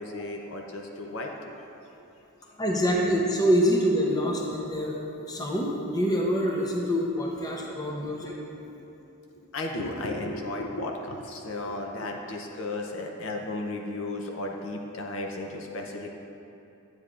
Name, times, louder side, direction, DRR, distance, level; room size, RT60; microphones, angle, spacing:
voice 1, 0.0-1.6 8.5-8.9 9.3-16.1, left 2 dB, 60° left, 2 dB, 0.6 m, -35 dB
voice 2, 2.6-5.0 5.3-8.3, equal, 15° left, -2 dB, 0.7 m, -25 dB
10.0 x 8.0 x 2.5 m, 2.9 s
head